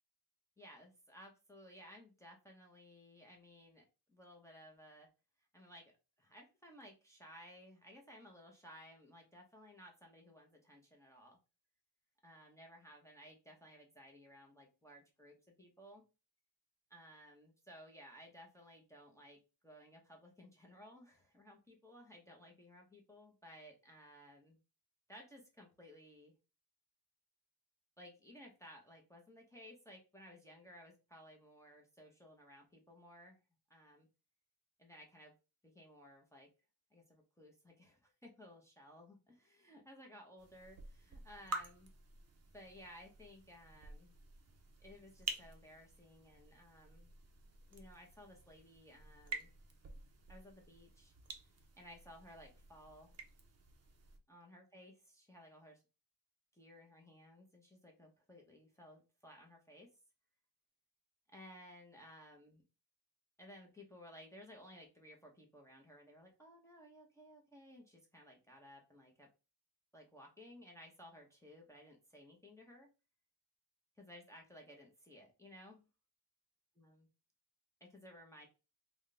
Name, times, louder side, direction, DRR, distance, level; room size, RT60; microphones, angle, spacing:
voice 1, 0.6-5.1 5.5-5.9 6.2-11.4 12.2-16.0 16.9-24.6 25.1-26.4 28.0-33.4 33.7-34.1 34.8-35.3 35.6-36.5 36.9-41.9 42.5-44.1 44.8-47.1 47.7-49.5 50.3-51.1 51.4-51.5 51.8-53.1 54.3-55.8 56.5-59.9 61.3-62.6 63.4-69.3 69.9-72.9 74.0-75.9 76.8-77.1 77.8-78.5, equal, 5° left, 0 dB, 0.7 m, -58 dB
sound 1, 40.4-54.2, right 3 dB, 35° right, 0.6 m, -50 dB
3.5 x 2.2 x 3.7 m, 0.29 s
wide cardioid pair, 160°, 42 cm